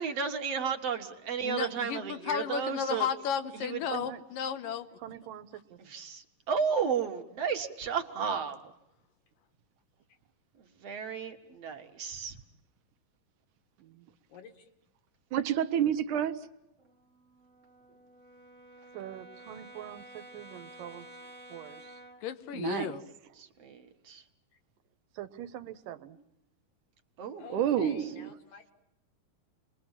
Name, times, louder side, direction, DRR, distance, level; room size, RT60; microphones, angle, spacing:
voice 1, 0.0-3.1 3.5-3.8 5.9-8.6 10.8-12.4 23.4-23.8 24.1-24.2 27.2-27.5, right 6 dB, 55° right, 5 dB, 2.4 m, -33 dB
voice 2, 1.4-4.9 22.2-23.0, left 8 dB, 90° left, 10 dB, 2.9 m, -33 dB
voice 3, 3.9-4.2 5.0-5.8 13.8-14.1 18.9-21.1 21.5-22.0 25.1-26.2, right 11 dB, 90° right, 11 dB, 2.8 m, -44 dB
voice 4, 14.3-14.7 27.4-28.7, left 6 dB, 65° left, 5 dB, 3.3 m, -49 dB
voice 5, 15.3-16.5 22.5-22.9 27.5-28.3, right 9 dB, 75° right, 9 dB, 2.4 m, -29 dB
Brass instrument, 16.8-22.3, right 1 dB, 35° right, 1.3 m, -51 dB
28.5 x 22.0 x 7.4 m, 0.87 s
omnidirectional pair, 3.8 m